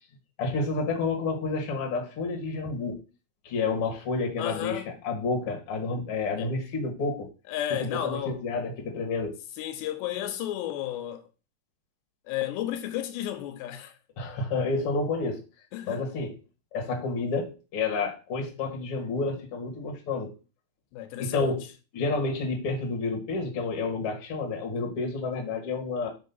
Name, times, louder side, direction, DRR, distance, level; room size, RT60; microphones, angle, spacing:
voice 1, 0.4-3.0 3.4-7.3 7.7-9.4 14.2-15.4 15.9-16.4 16.7-20.3 21.2-21.6 21.9-26.1, left 3 dB, 50° left, 1.9 m, -30 dB
voice 2, 4.4-4.9 6.0-6.1 6.4-6.5 7.5-8.4 9.6-11.2 12.3-13.9 15.7-16.0 20.9-21.6, left 12 dB, 85° left, 2.9 m, -32 dB
5.4 x 4.7 x 5.5 m
omnidirectional pair, 4.9 m